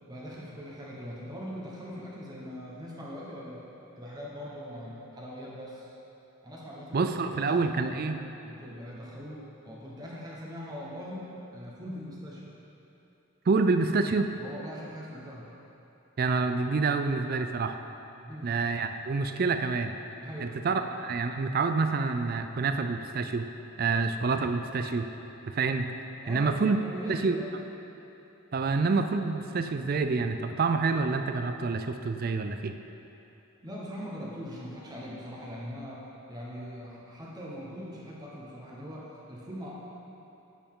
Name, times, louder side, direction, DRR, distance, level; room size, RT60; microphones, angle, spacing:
voice 1, 0.0-3.6 4.0-5.9 6.4-8.0 8.4-12.5 14.4-15.5 18.2-18.5 20.1-20.9 26.2-27.6 33.6-39.7, equal, 20° right, -5 dB, 1.1 m, -41 dB
voice 2, 6.9-8.2 13.5-14.3 16.2-17.7 18.4-19.9 20.4-23.5 23.8-25.1 25.5-25.9 26.3-26.8 27.1-27.4 28.5-32.7, right 4 dB, 45° right, 7 dB, 0.4 m, -27 dB
10.0 x 7.0 x 3.7 m, 2.9 s
head